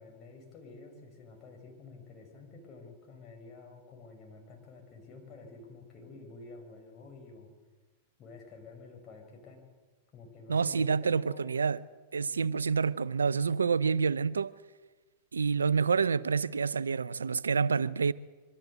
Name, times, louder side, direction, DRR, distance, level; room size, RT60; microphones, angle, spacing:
voice 1, 0.0-7.5 8.2-9.6 10.1-11.7, left 3 dB, 35° left, 6.4 m, -50 dB
voice 2, 10.5-11.8 12.1-14.5 15.3-18.1, right 5 dB, 90° right, 0.5 m, -28 dB
24.0 x 14.0 x 8.1 m
hypercardioid pair, 105°, 0 cm